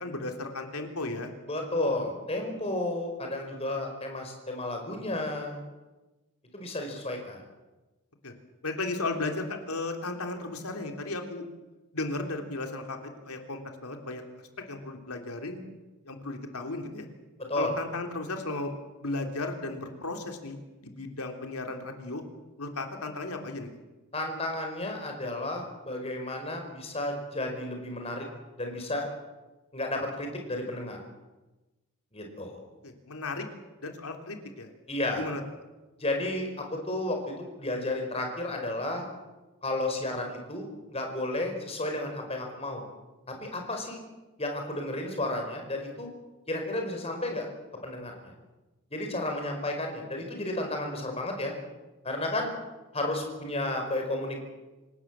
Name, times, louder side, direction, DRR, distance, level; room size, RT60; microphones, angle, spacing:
voice 1, 0.0-1.3 8.2-8.3 8.6-11.4 11.9-14.2 14.7-15.7 16.1-17.1 17.6-18.7 19.0-20.6 20.8-22.2 22.6-23.7 32.8-33.5 33.8-34.7 35.2-35.4, left 2 dB, 90° left, 4 dB, 3.4 m, -35 dB
voice 2, 1.5-5.6 6.5-7.4 17.4-17.8 24.1-28.3 28.6-29.1 29.7-31.0 32.1-32.6 34.9-35.2 36.0-39.1 39.6-42.8 43.3-44.0 44.4-46.1 46.5-47.5 47.8-48.3 48.9-51.5 52.0-52.5 52.9-54.4, left 1 dB, 25° left, 3 dB, 4.9 m, -32 dB
26.5 x 18.0 x 7.5 m, 1.1 s
head